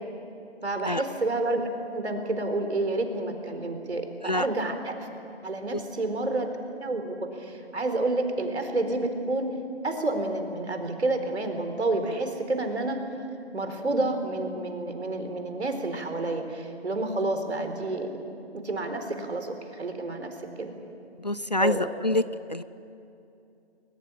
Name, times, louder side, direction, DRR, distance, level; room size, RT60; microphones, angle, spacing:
voice 1, 0.6-5.1 5.4-6.5 6.8-9.5 9.8-13.0 13.5-18.2 18.6-20.3 20.6-20.7 21.6-21.9, right 2 dB, 75° right, 6 dB, 4.3 m, -29 dB
voice 2, 21.2-22.2 22.5-22.6, left 1 dB, 40° left, 16 dB, 0.5 m, -26 dB
21.5 x 21.0 x 10.0 m, 2.7 s
hypercardioid pair, 175°, 34 cm